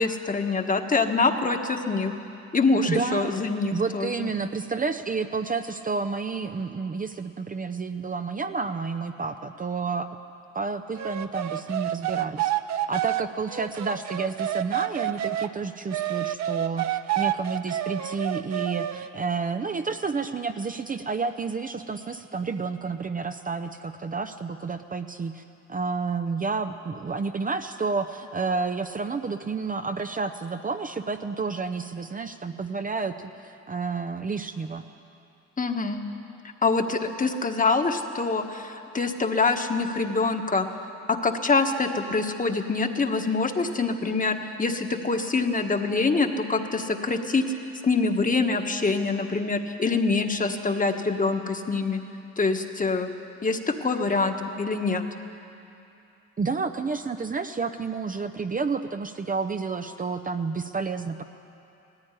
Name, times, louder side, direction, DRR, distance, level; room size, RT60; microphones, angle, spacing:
voice 1, 0.0-2.1 2.5-4.3 35.6-36.0 36.6-40.7 41.1-47.5 47.8-52.0 52.4-53.1 53.4-55.0, left 3 dB, 25° left, 5 dB, 1.5 m, -25 dB
voice 2, 2.9-3.3 3.7-10.1 10.5-12.5 12.9-25.4 25.7-34.8 56.4-61.2, right 4 dB, 25° right, 7 dB, 0.7 m, -30 dB
sound 1, 11.0-15.5 15.9-19.1, right 12 dB, 65° right, 0.8 m, -29 dB
17.5 x 14.5 x 9.9 m, 2.7 s
cardioid pair, 90°, 30 cm